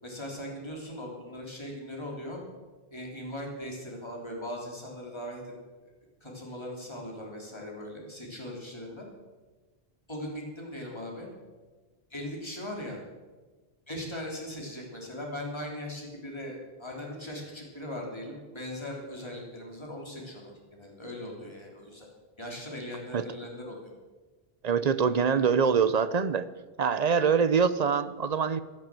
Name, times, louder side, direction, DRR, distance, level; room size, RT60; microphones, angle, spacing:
voice 1, 0.0-2.4 2.9-5.5 6.2-9.1 10.1-11.3 12.1-13.0 13.9-22.1 22.4-23.9, left 1 dB, 25° left, -1 dB, 3.4 m, -39 dB
voice 2, 24.6-26.4 26.8-28.6, right 6 dB, 45° right, 14 dB, 0.7 m, -24 dB
16.5 x 11.0 x 7.6 m, 1.3 s
omnidirectional pair, 1.1 m